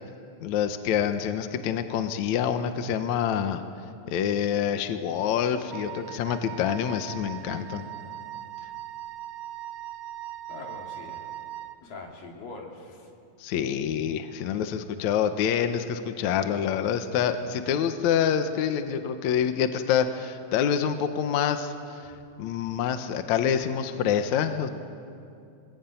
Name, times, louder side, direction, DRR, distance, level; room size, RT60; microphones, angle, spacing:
voice 1, 0.4-3.6 4.1-7.8 13.4-22.1 22.4-24.7, left 8 dB, 65° left, 8 dB, 2.2 m, -26 dB
Wind instrument woodwind instrument, 5.7-11.8, right 13 dB, 80° right, 1.6 m, -40 dB
voice 2, 10.5-11.3 11.8-13.1, left 3 dB, 85° left, 1 dB, 4.5 m, -42 dB
26.5 x 20.5 x 9.1 m, 2.5 s
omnidirectional pair, 3.9 m